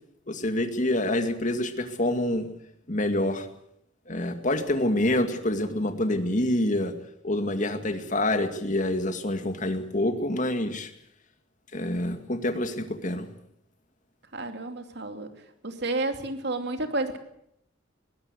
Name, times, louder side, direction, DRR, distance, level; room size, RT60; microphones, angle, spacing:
voice 1, 0.3-2.5 2.9-3.5 4.1-6.9 7.2-10.9 11.7-13.3, left 1 dB, 40° left, 7 dB, 2.2 m, -27 dB
voice 2, 14.3-15.3 15.6-17.2, right 2 dB, 60° right, 7 dB, 2.7 m, -30 dB
21.5 x 17.0 x 8.2 m, 0.75 s
head